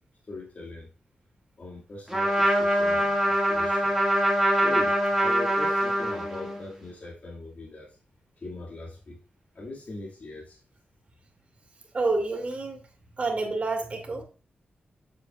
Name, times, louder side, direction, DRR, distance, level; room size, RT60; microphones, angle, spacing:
voice 1, 0.3-0.9 1.6-3.9 4.6-7.9 8.4-9.2 9.5-10.6, left 2 dB, 45° left, 2.3 m, -40 dB
Trumpet, 2.1-6.7, equal, 5° right, 2.1 m, -24 dB
voice 2, 11.9-12.8 13.2-14.2, right 3 dB, 35° right, 2.6 m, -28 dB
8.2 x 7.7 x 2.5 m
wide cardioid pair, 125°, 3 cm